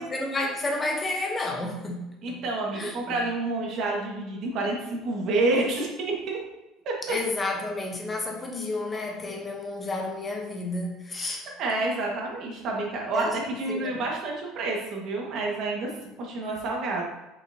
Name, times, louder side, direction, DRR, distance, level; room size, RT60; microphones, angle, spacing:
voice 1, 0.0-2.4 2.7-3.2 7.0-11.5 13.1-13.3 13.7-14.0, left 2 dB, 20° left, 1 dB, 0.9 m, -31 dB
voice 2, 2.2-6.4 6.8-6.9 11.6-15.9 16.2-17.1, right 2 dB, 50° right, -1 dB, 1.7 m, -28 dB
6.3 x 5.6 x 2.8 m, 1.0 s
cardioid pair, 130°, 0 cm